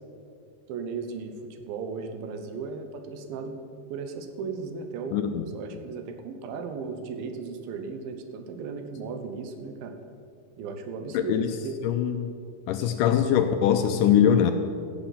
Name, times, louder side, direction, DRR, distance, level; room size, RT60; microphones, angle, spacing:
voice 1, 0.7-3.6 3.9-5.3 5.5-9.9 10.6-11.8, right 5 dB, 80° right, 5 dB, 2.7 m, -36 dB
voice 2, 5.1-5.5 11.1-11.5 11.8-12.3 12.7-14.5, left 9 dB, 85° left, 7 dB, 1.9 m, -22 dB
16.0 x 7.6 x 5.8 m, 2.4 s
omnidirectional pair, 4.2 m